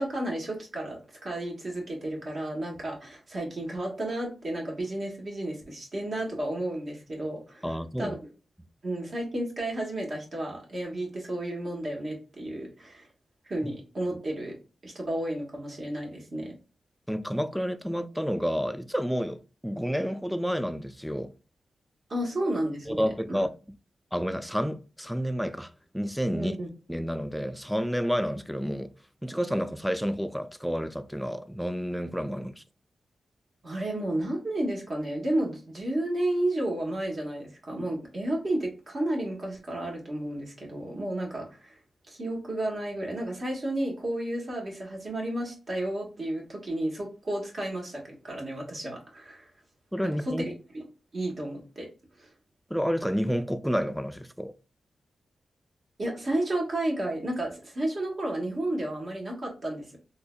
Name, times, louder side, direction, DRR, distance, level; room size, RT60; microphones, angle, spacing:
voice 1, 0.0-7.6 8.0-8.2 8.8-13.1 13.4-14.5 14.8-16.6 22.1-23.4 26.3-26.7 33.6-41.8 42.1-49.5 50.0-50.3 51.1-51.9 52.2-52.3 56.0-60.0, right 1 dB, 55° right, 1.5 m, -32 dB
voice 2, 7.6-8.2 17.1-21.3 22.9-23.5 24.1-26.5 26.9-28.9 29.2-32.6 49.9-50.4 52.7-54.5, equal, ahead, 0.4 m, -30 dB
3.8 x 2.8 x 2.3 m
cardioid pair, 65°, 0 cm